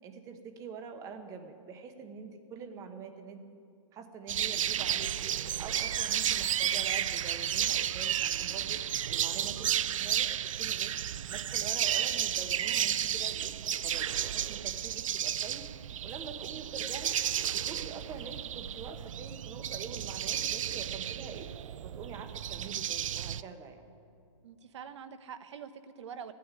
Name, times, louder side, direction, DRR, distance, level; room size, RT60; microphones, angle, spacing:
voice 1, 0.0-3.4 3.9-11.0 11.3-13.5 13.8-15.6 16.0-17.1 17.5-21.5 21.8-23.8, right 5 dB, 20° right, 8 dB, 1.0 m, -45 dB
voice 2, 2.6-2.9 24.4-26.3, right 7 dB, 60° right, 11 dB, 1.0 m, -45 dB
sound 1, 4.3-23.4, right 10 dB, 75° right, 0.4 m, -32 dB
13.5 x 9.3 x 9.7 m, 2.4 s
hypercardioid pair, 155°, 17 cm